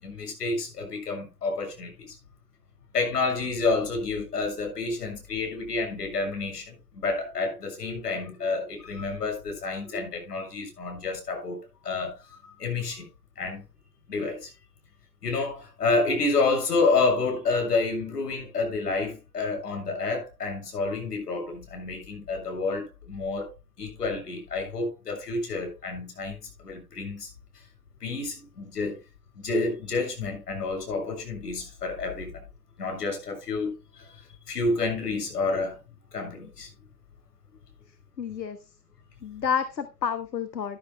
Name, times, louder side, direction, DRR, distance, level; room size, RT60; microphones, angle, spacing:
voice 1, 0.0-2.2 2.9-13.1 13.4-13.6 14.1-14.5 15.2-23.5 23.8-26.4 26.6-27.3 28.0-29.0 29.4-32.4 32.8-35.8 36.1-36.7, left 3 dB, 70° left, 6.8 m, -29 dB
voice 2, 38.2-38.6 39.2-40.8, left 7 dB, 85° left, 1.3 m, -29 dB
13.5 x 11.5 x 2.2 m
figure-of-eight pair, 125°, 50 cm